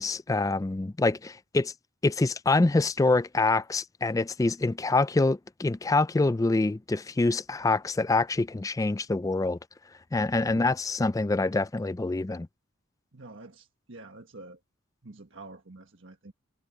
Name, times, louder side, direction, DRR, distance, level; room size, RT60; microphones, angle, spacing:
voice 1, 0.0-1.7 2.0-9.6 10.1-12.5, left 3 dB, 15° left, 0.3 m, -25 dB
voice 2, 13.1-14.6 15.0-16.3, right 2 dB, 60° right, 1.6 m, -47 dB
head